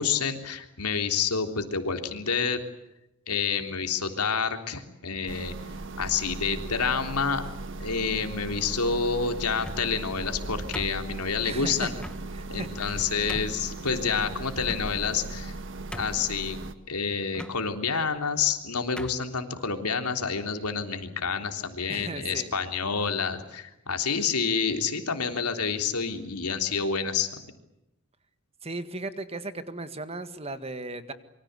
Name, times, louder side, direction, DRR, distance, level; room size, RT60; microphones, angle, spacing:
voice 1, 0.0-2.6 3.3-5.5 6.0-7.4 7.8-11.9 12.5-15.5 16.0-16.6 16.9-27.5, left 5 dB, 90° left, 6 dB, 3.5 m, -28 dB
sound 1, 5.3-16.7, right 2 dB, 60° right, 1.6 m, -37 dB
sound 2, 9.5-10.0 10.7-11.4 12.0-12.2 12.8-12.9 13.3-13.6 14.6-15.2 15.5-15.6 15.9-16.4 17.3-17.6 18.4-18.6 19.0-19.3, equal, 5° left, 1.3 m, -40 dB
voice 2, 11.4-11.9 12.3-13.0 21.9-22.5 28.6-31.1, right 2 dB, 25° right, 11 dB, 1.8 m, -36 dB
26.5 x 24.0 x 8.2 m, 0.87 s
head